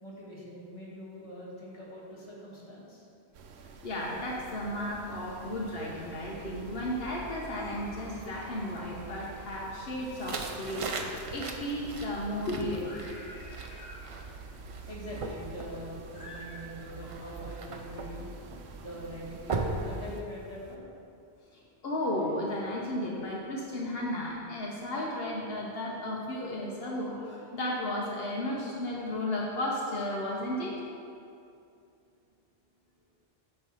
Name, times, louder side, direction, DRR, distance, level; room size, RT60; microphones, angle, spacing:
voice 1, 0.0-3.1 14.9-18.3 18.8-20.8, equal, 30° left, -6 dB, 1.6 m, -43 dB
sound 1, 3.3-20.2, right 4 dB, 90° right, 0.9 m, -47 dB
voice 2, 3.8-10.9 11.3-14.2 16.1-16.6 21.5-30.7, left 1 dB, 70° left, -3 dB, 1.0 m, -34 dB
sound 2, 10.0-20.7, right 3 dB, 40° right, 0.5 m, -40 dB
9.1 x 3.3 x 6.1 m, 2.5 s
omnidirectional pair, 1.1 m